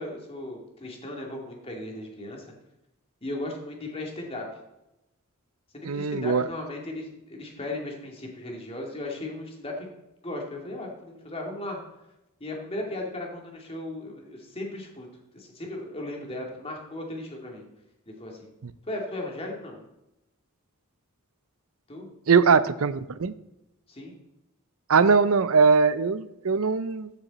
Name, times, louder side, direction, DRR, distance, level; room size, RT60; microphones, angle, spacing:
voice 1, 0.0-2.4 3.2-4.4 5.7-9.9 10.2-11.8 12.4-15.1 15.3-17.6 18.2-18.5 18.9-19.8 21.9-22.1 23.9-24.1, left 1 dB, 30° left, 0 dB, 2.4 m, -36 dB
voice 2, 5.8-6.4 18.6-18.7 22.3-23.3 24.9-27.1, right 5 dB, 70° right, 14 dB, 0.6 m, -21 dB
14.0 x 6.9 x 4.2 m, 0.91 s
head